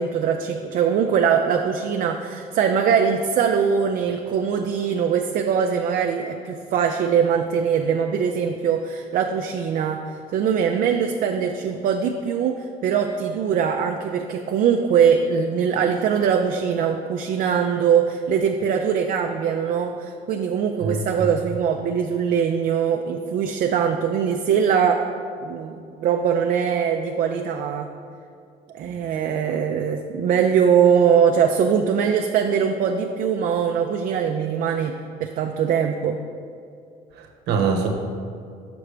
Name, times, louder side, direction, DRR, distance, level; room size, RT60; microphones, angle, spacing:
voice 1, 0.0-10.0 10.3-25.0 25.4-27.9 28.7-34.9 35.2-36.2, right 7 dB, 55° right, 4 dB, 0.4 m, -22 dB
voice 2, 20.8-21.3 37.2-37.9, right 5 dB, 80° right, 3 dB, 0.9 m, -24 dB
6.5 x 5.9 x 3.3 m, 2.3 s
cardioid pair, 110°, 17 cm